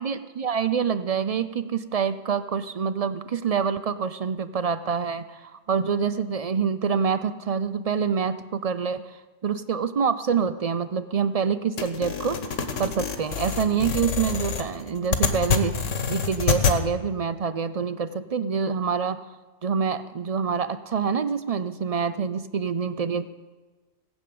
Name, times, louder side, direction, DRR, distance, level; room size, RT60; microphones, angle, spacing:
voice 1, 0.0-12.5 12.8-15.8 16.1-19.2 19.6-23.3, right 6 dB, 55° right, 12 dB, 0.4 m, -26 dB
sound 1, 11.8-16.8, left 6 dB, 75° left, 1.5 m, -26 dB
18.5 x 7.3 x 8.5 m, 1.2 s
omnidirectional pair, 1.3 m